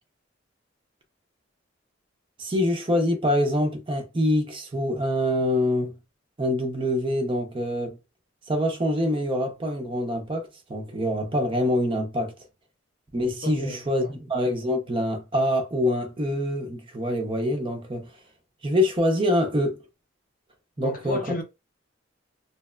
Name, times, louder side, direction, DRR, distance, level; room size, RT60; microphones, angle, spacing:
voice 1, 2.4-6.0 6.4-8.0 8.5-12.3 13.1-18.1 18.6-19.8 20.8-21.2, left 1 dB, 25° right, 0.5 m, -25 dB
voice 2, 13.4-14.1 20.8-21.4, left 2 dB, 45° left, 0.6 m, -33 dB
2.8 x 2.1 x 2.2 m
head